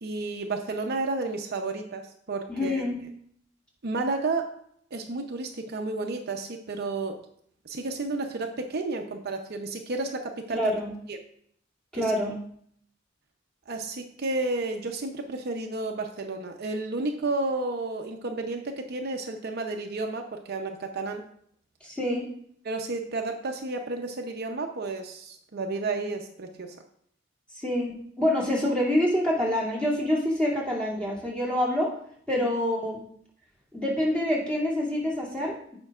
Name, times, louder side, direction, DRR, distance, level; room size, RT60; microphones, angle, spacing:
voice 1, 0.0-2.8 3.8-4.5 4.9-7.2 7.6-10.7 11.1-11.2 11.9-12.1 13.7-21.2 22.6-26.8 32.3-32.5, right 3 dB, 55° right, 4 dB, 0.7 m, -31 dB
voice 2, 2.5-3.0 10.5-10.9 11.9-12.4 21.8-22.3 27.5-31.9 32.3-33.0 33.7-35.8, left 1 dB, 5° left, -5 dB, 2.4 m, -26 dB
15.5 x 5.2 x 2.4 m, 0.67 s
head